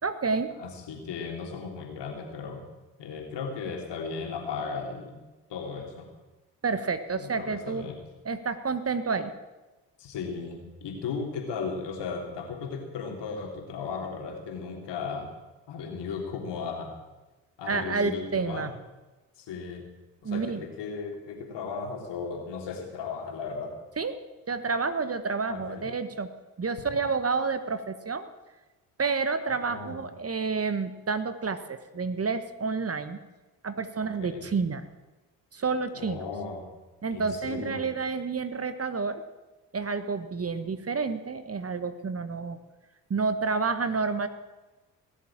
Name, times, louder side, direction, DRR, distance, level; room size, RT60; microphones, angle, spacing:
voice 1, 0.0-0.5 6.6-7.9 8.2-9.3 17.6-18.7 20.2-20.6 24.0-24.2 24.5-26.3 26.6-28.3 29.0-33.2 33.6-34.8 35.5-36.2 37.0-39.2 39.7-42.6 43.1-44.3, right 4 dB, 30° right, 12 dB, 1.4 m, -29 dB
voice 2, 0.6-2.6 3.0-5.2 5.5-6.1 7.2-8.0 10.0-15.3 15.7-16.9 17.6-18.7 19.4-19.8 20.2-23.7 25.5-25.9 29.6-30.0 34.2-34.5 35.9-36.7 37.1-37.8, left 5 dB, 65° left, 2 dB, 3.6 m, -36 dB
18.5 x 7.5 x 8.9 m, 1.2 s
hypercardioid pair, 50°, 45 cm